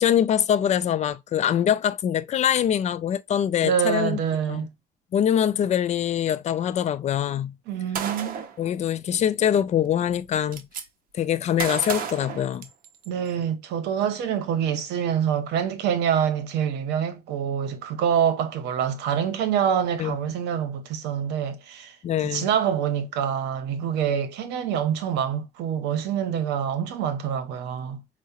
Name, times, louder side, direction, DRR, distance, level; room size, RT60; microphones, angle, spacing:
voice 1, 0.0-4.2 4.5-4.7 5.1-7.5 8.6-10.6 11.1-12.7 20.0-20.2 22.0-22.5, left 9 dB, 40° left, 0.4 m, -23 dB
voice 2, 3.6-4.7 7.7-8.4 13.1-22.0 22.3-28.0, right 8 dB, 90° right, 0.8 m, -26 dB
Gunshot gunfire, 7.9-8.6 9.7-9.8 10.1-10.8 11.6-13.1, right 7 dB, 60° right, 0.7 m, -32 dB
4.6 x 2.1 x 2.8 m
cardioid pair, 110°, 17 cm